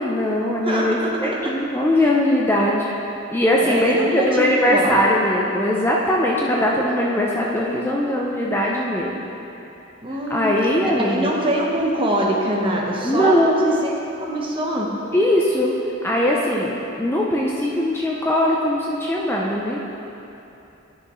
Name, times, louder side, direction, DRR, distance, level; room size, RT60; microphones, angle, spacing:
voice 1, 0.0-2.9 3.3-9.2 10.3-11.3 13.0-13.7 15.1-15.7 16.0-19.8, left 1 dB, 10° left, -3 dB, 0.5 m, -20 dB
voice 2, 0.6-1.4 3.6-5.0 10.0-10.5 10.8-13.9 14.2-14.9, right 1 dB, 25° right, -2 dB, 1.0 m, -23 dB
12.0 x 6.5 x 3.1 m, 3.0 s
head